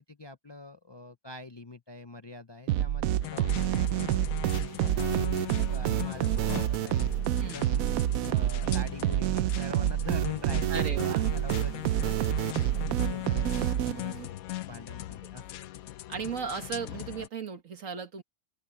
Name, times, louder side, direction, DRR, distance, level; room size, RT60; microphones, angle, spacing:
voice 1, 0.0-4.2 4.6-7.0 7.4-7.9 8.3-14.4 14.7-15.5, left 2 dB, 30° left, 0.5 m, -44 dB
sound 1, 2.7-14.3, right 13 dB, 85° right, 1.0 m, -28 dB
sound 2, 3.2-17.3, left 15 dB, 85° left, 1.1 m, -39 dB
voice 2, 10.7-11.3 15.2-15.3 16.1-18.2, right 6 dB, 70° right, 2.0 m, -36 dB
open air
omnidirectional pair, 1.4 m